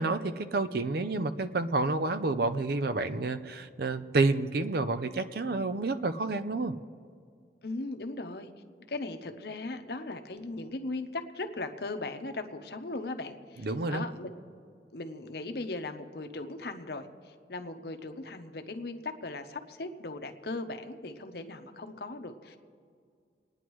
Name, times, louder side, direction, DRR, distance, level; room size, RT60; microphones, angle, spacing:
voice 1, 0.0-6.7 13.6-14.1, right 3 dB, 55° right, 11 dB, 0.5 m, -29 dB
voice 2, 7.6-8.5 8.9-14.3 14.9-22.6, left 2 dB, 60° left, 7 dB, 0.8 m, -38 dB
29.0 x 9.8 x 3.1 m, 2.2 s
head